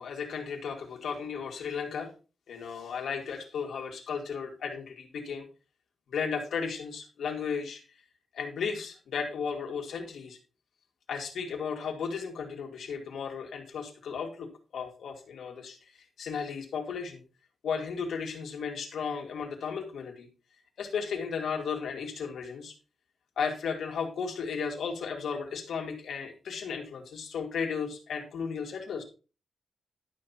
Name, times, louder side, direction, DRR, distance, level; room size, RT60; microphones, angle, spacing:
voice 1, 0.0-2.1 2.5-5.5 6.1-7.8 8.3-10.4 11.1-14.5 14.7-17.2 17.6-20.3 20.8-22.7 23.4-29.0, left 6 dB, 85° left, 1 dB, 2.4 m, -35 dB
12.0 x 5.6 x 4.2 m, 0.33 s
wide cardioid pair, 110°, 0 cm